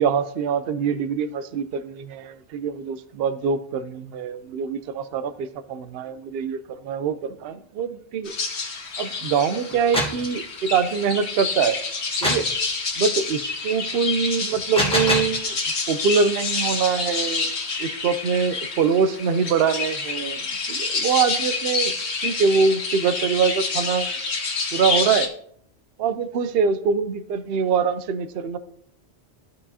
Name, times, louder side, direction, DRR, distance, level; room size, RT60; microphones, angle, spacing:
voice 1, 0.0-8.3 9.0-11.8 12.2-12.5 13.0-15.6 15.9-17.5 17.8-21.9 22.2-24.1 24.7-25.3 26.0-28.6, right 6 dB, 70° right, 13 dB, 0.8 m, -24 dB
sound 1, 8.3-25.3, left 4 dB, 85° left, 1.4 m, -28 dB
sound 2, 9.7-10.2 12.2-12.5 14.5-15.4, equal, 5° left, 1.3 m, -24 dB
14.0 x 4.8 x 2.8 m, 0.64 s
omnidirectional pair, 1.1 m